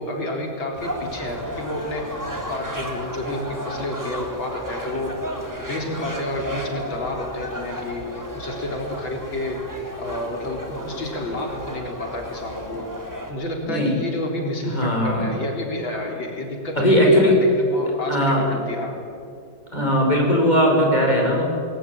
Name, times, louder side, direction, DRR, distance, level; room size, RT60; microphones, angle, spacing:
voice 1, 0.0-2.2 2.5-5.2 5.6-9.6 10.0-12.8 13.3-19.0, left 1 dB, 80° left, 1 dB, 4.6 m, -30 dB
sound 1, 0.8-13.3, equal, 10° right, 3.6 m, -33 dB
voice 2, 13.6-14.0 14.7-15.3 16.8-17.4 18.1-18.5 19.7-21.5, equal, 20° left, 0 dB, 6.1 m, -18 dB
27.5 x 20.5 x 10.0 m, 2.4 s
omnidirectional pair, 2.1 m